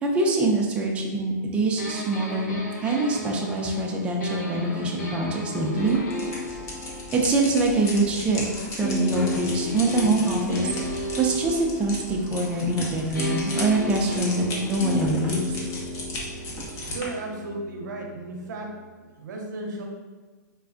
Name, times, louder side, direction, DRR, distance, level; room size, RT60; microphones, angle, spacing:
voice 1, 0.0-6.0 7.1-15.6, right 2 dB, 10° right, -1 dB, 0.4 m, -24 dB
sound 1, 1.8-8.3 8.8-12.8 13.1-18.9, left 1 dB, 70° left, 1.1 m, -34 dB
sound 2, 5.8-17.1, left 1 dB, 30° left, 0.7 m, -36 dB
voice 2, 16.9-18.7 19.2-19.8, right 2 dB, 75° right, 1 dB, 0.6 m, -34 dB
4.2 x 2.2 x 2.5 m, 1.3 s
hypercardioid pair, 130°, 10 cm